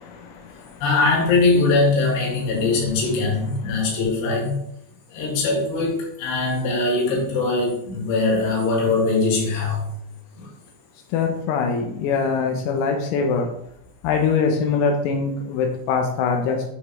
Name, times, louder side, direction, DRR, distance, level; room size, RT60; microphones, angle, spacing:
voice 1, 0.0-0.8 3.7-3.8 11.1-13.5 14.0-16.6, left 5 dB, 85° left, 3.6 m, -23 dB
voice 2, 0.8-4.6 5.1-9.9 10.4-10.5, left 3 dB, 60° left, 3.9 m, -21 dB
10.0 x 5.2 x 3.4 m
omnidirectional pair, 6.0 m